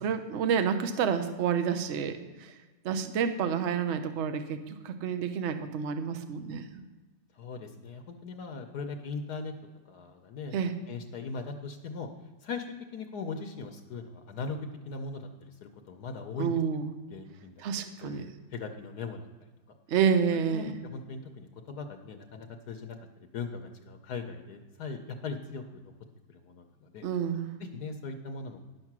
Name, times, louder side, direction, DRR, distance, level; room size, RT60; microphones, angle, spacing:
voice 1, 0.0-2.5 2.8-6.8 10.5-10.7 16.4-16.9 17.6-18.2 19.9-20.8 27.0-27.6, right 7 dB, 55° right, 9 dB, 0.8 m, -29 dB
voice 2, 7.3-9.5 9.9-10.6 10.9-12.1 12.4-12.7 12.9-14.6 14.8-16.5 17.1-17.6 18.0-19.5 20.5-25.9 26.3-27.1 27.6-28.7, left 4 dB, 65° left, 5 dB, 1.2 m, -39 dB
10.5 x 6.5 x 6.0 m, 1.2 s
omnidirectional pair, 2.0 m